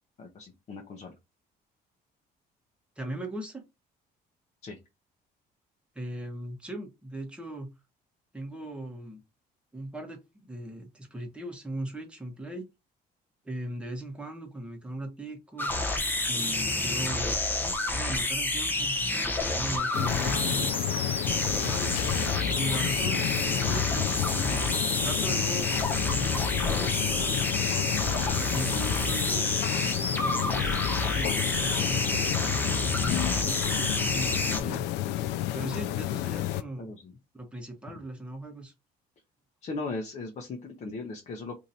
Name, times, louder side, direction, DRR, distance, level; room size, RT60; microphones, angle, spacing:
voice 1, 0.2-1.1 4.6-4.8 36.8-37.1 39.6-41.6, left 3 dB, 45° left, 0.8 m, -38 dB
voice 2, 3.0-3.6 5.9-7.7 8.3-9.2 9.7-12.7 13.4-15.7 16.3-17.4 17.9-19.0 19.5-20.8 21.4-22.0 22.5-24.6 25.0-25.8 26.0-27.4 28.3-32.4 33.0-34.9 35.5-36.9 37.3-38.7, right 1 dB, 5° right, 1.1 m, -39 dB
sound 1, 15.6-34.6, left 2 dB, 10° left, 0.9 m, -29 dB
sound 2, 19.9-36.6, left 13 dB, 90° left, 0.4 m, -31 dB
2.9 x 2.7 x 4.0 m
cardioid pair, 110°, 17 cm